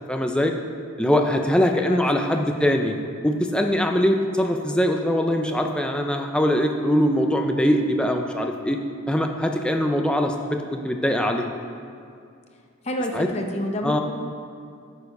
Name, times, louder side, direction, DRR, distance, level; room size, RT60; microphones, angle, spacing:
voice 1, 0.1-0.5 1.0-2.9 3.2-8.8 9.1-11.4 13.1-13.3 13.8-14.0, equal, 5° left, 3 dB, 0.5 m, -22 dB
voice 2, 12.8-14.0, left 1 dB, 30° left, 2 dB, 0.9 m, -29 dB
9.2 x 6.8 x 5.4 m, 2.4 s
head